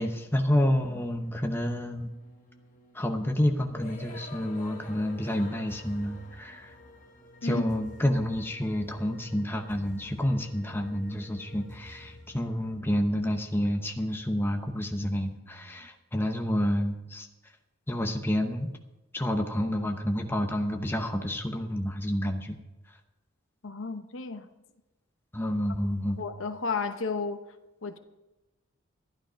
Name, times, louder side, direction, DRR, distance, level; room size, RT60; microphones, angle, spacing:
voice 1, 0.0-2.1 2.9-6.7 7.4-17.3 17.9-18.8 19.1-22.6 25.3-26.2, left 1 dB, 10° left, 0.9 m, -29 dB
sound 1, 1.1-15.9, left 1 dB, 40° left, 1.4 m, -50 dB
voice 2, 23.6-24.5 26.2-27.4 27.8-28.0, left 4 dB, 70° left, 0.9 m, -32 dB
12.0 x 11.5 x 5.1 m
head